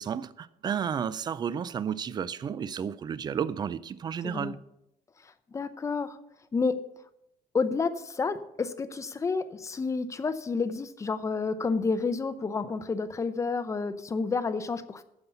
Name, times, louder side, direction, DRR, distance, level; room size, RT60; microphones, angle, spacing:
voice 1, 0.0-4.6, right 7 dB, 25° right, 0.4 m, -32 dB
voice 2, 4.2-4.5 5.5-6.2 6.5-6.8 7.5-15.0, left 4 dB, 20° left, 0.6 m, -30 dB
9.6 x 7.0 x 6.9 m
cardioid pair, 155°, 15 cm